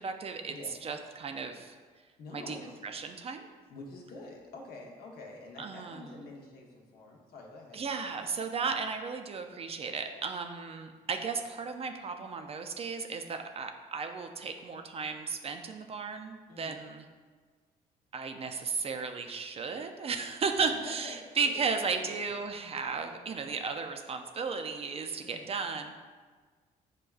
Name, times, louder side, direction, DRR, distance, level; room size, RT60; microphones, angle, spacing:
voice 1, 0.0-0.5 0.8-1.7 2.3-2.6 2.8-3.5 5.6-6.1 7.7-17.0 18.1-25.9, right 5 dB, 35° right, 5 dB, 0.4 m, -35 dB
voice 2, 2.2-2.8 3.7-7.8 16.5-16.8 20.7-21.7 22.0-22.3 25.2-25.6, left 2 dB, 65° left, 0 dB, 0.8 m, -47 dB
6.2 x 2.2 x 2.3 m, 1.5 s
supercardioid pair, 75°, 17 cm